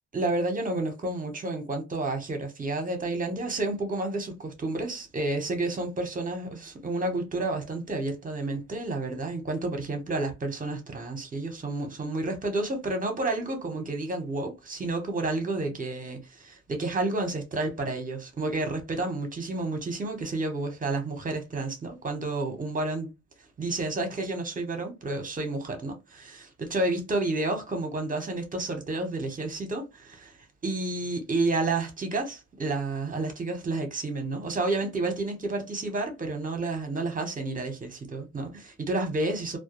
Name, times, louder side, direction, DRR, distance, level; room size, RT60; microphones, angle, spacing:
voice 1, 0.1-23.1 23.6-30.3 30.6-39.6, right 2 dB, 25° right, 0.9 m, -30 dB
2.2 x 2.2 x 2.9 m
cardioid pair, 90°, 30 cm